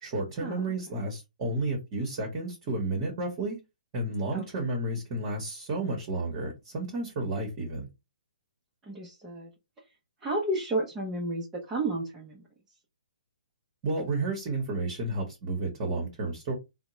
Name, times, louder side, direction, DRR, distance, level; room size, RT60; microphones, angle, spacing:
voice 1, 0.0-3.6 3.9-7.9 13.8-16.5, right 2 dB, 30° right, 1.0 m, -31 dB
voice 2, 8.9-9.5 10.2-12.4, right 2 dB, 10° right, 0.6 m, -31 dB
3.5 x 2.1 x 3.0 m
hypercardioid pair, 160°, 4 cm